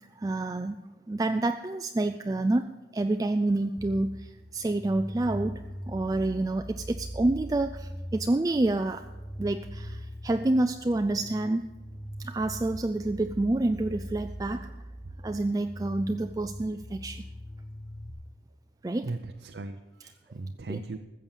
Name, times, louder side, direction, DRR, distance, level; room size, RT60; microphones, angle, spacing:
voice 1, 0.2-9.0 9.4-11.7 12.2-14.7 15.2-17.2 18.8-19.1 20.7-20.8, right 2 dB, 20° right, 8 dB, 0.3 m, -28 dB
sound 1, 3.8-18.1, equal, ahead, 1.0 m, -41 dB
voice 2, 15.0-15.4 19.0-21.0, right 3 dB, 80° right, 6 dB, 0.6 m, -38 dB
14.0 x 7.6 x 7.3 m, 1.1 s
head